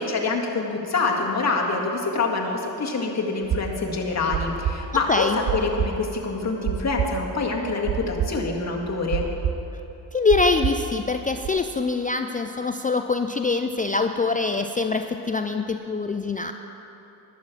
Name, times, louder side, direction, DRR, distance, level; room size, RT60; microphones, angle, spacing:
voice 1, 0.0-9.2, left 3 dB, 35° left, -1 dB, 1.9 m, -26 dB
sound 1, 3.4-11.5, right 9 dB, 50° right, 0.8 m, -28 dB
voice 2, 5.1-5.4 10.1-16.5, left 3 dB, 20° left, 6 dB, 0.4 m, -24 dB
11.5 x 6.4 x 7.4 m, 3.0 s
supercardioid pair, 65°, 44 cm